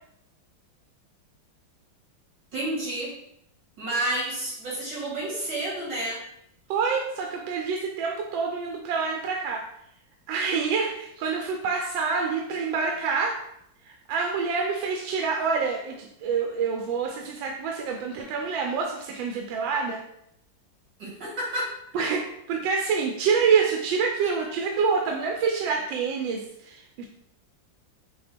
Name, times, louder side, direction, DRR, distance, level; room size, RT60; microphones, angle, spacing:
voice 1, 2.5-3.1 3.8-6.2 21.0-21.7 22.0-22.1, right 1 dB, 60° right, -8 dB, 2.5 m, -30 dB
voice 2, 6.7-9.6 10.3-13.4 13.8-20.0 21.9-27.1, right 5 dB, 80° right, 2 dB, 1.3 m, -27 dB
6.7 x 2.3 x 3.4 m, 0.75 s
omnidirectional pair, 2.2 m